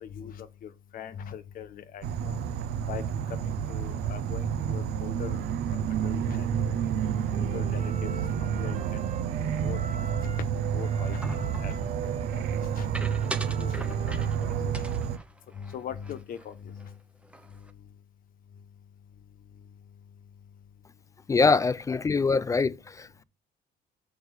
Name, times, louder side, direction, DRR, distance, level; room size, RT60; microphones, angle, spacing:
voice 1, 0.0-2.4 2.9-3.0 3.4-5.4 5.7-6.8 7.3-8.3 8.6-8.8 9.6-9.8 10.2-12.9 13.6-14.9 15.5-16.9, left 8 dB, 55° left, 1.0 m, -41 dB
Insect / Frog, 2.0-15.2, right 8 dB, 70° right, 0.6 m, -29 dB
Wind instrument woodwind instrument, 6.8-10.5 10.8-14.8, right 7 dB, 50° right, 1.1 m, -44 dB
sound 1, 11.2-11.8 12.9-14.4 14.7-16.5 16.8-16.9 17.2-17.7, right 1 dB, 5° right, 0.8 m, -40 dB
voice 2, 21.3-23.2, left 4 dB, 20° left, 0.4 m, -24 dB
6.3 x 4.9 x 6.3 m
cardioid pair, 110°, 17 cm